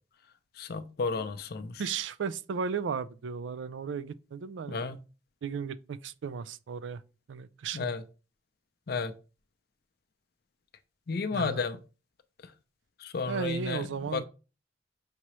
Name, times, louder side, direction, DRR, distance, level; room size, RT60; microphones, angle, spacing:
voice 1, 0.6-1.8 4.7-5.0 7.7-8.0 8.9-9.1 11.1-11.8 13.0-13.9 14.1-14.2, left 4 dB, 55° left, 0.5 m, -32 dB
voice 2, 1.8-4.8 5.4-7.0 7.3-7.9 11.3-11.6 13.3-14.2, right 5 dB, 90° right, 0.4 m, -35 dB
5.9 x 2.8 x 3.1 m
head